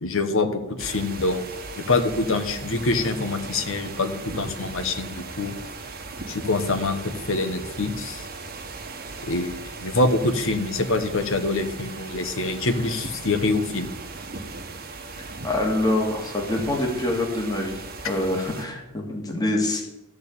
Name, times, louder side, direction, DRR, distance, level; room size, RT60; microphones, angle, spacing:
voice 1, 0.0-1.4 1.8-5.5 6.3-8.2 9.2-13.9, left 2 dB, 60° left, 9 dB, 1.1 m, -25 dB
sound 1, 0.8-18.6, right 3 dB, 45° right, 1.2 m, -38 dB
voice 2, 15.4-17.7 18.1-19.8, left 1 dB, 15° left, 0 dB, 1.9 m, -25 dB
13.0 x 4.5 x 8.5 m, 0.94 s
head